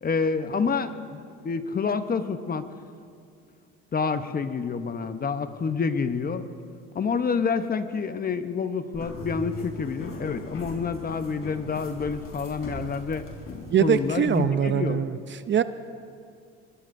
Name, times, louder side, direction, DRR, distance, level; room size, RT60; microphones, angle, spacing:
voice 1, 0.0-2.6 3.9-6.5 6.9-13.2 13.8-15.0, left 5 dB, 30° left, 10 dB, 0.9 m, -28 dB
sound 1, 8.9-14.4, left 1 dB, 45° left, 4.1 m, -40 dB
voice 2, 13.7-15.2 15.5-15.6, right 8 dB, 40° right, 12 dB, 0.6 m, -22 dB
23.5 x 21.0 x 2.7 m, 2.3 s
supercardioid pair, 85°, 31 cm